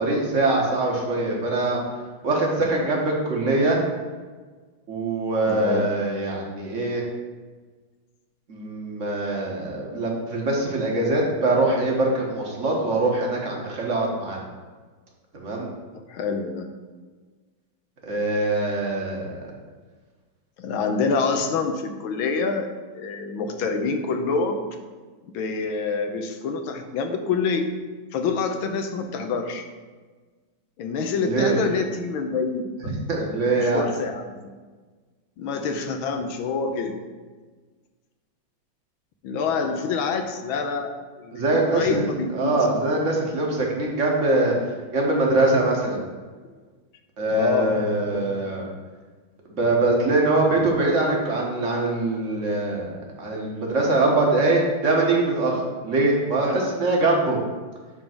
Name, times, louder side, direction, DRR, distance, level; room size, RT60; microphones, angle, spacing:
voice 1, 0.0-1.8 2.2-3.8 4.9-7.0 8.5-14.4 15.3-15.7 18.0-19.5 31.2-31.6 33.1-33.9 41.3-42.0 42.3-44.5 44.9-46.0 47.2-48.7 49.5-57.4, right 2 dB, 40° right, -1 dB, 1.7 m, -23 dB
voice 2, 5.5-5.9 15.9-16.7 20.6-24.7 25.3-27.7 28.1-29.6 30.8-32.7 33.4-34.3 35.4-36.9 39.2-42.7 46.4-46.5 47.3-48.4, left 4 dB, 85° left, 6 dB, 1.6 m, -27 dB
9.2 x 3.8 x 5.9 m, 1.4 s
omnidirectional pair, 2.2 m